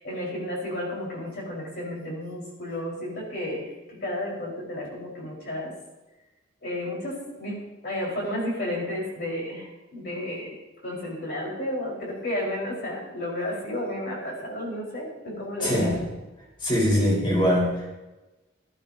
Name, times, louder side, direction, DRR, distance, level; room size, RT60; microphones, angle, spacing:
voice 1, 0.0-5.7 6.6-10.6 10.8-15.9, left 1 dB, 55° left, -4 dB, 4.9 m, -32 dB
voice 2, 15.6-16.1 16.6-17.9, equal, 25° left, -5 dB, 4.8 m, -22 dB
20.0 x 13.0 x 2.9 m, 1.1 s
head